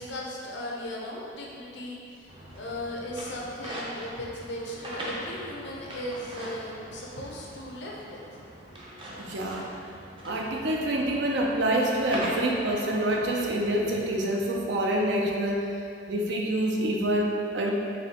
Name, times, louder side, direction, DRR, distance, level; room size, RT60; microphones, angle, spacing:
voice 1, 0.0-8.2, left 1 dB, 65° left, -2 dB, 0.7 m, -37 dB
sound 1, 2.3-14.3, right 1 dB, 30° right, 0.6 m, -41 dB
voice 2, 9.2-9.6 10.2-15.6 16.1-17.7, right 1 dB, 70° right, -1 dB, 0.6 m, -26 dB
4.1 x 3.5 x 2.9 m, 2.4 s
head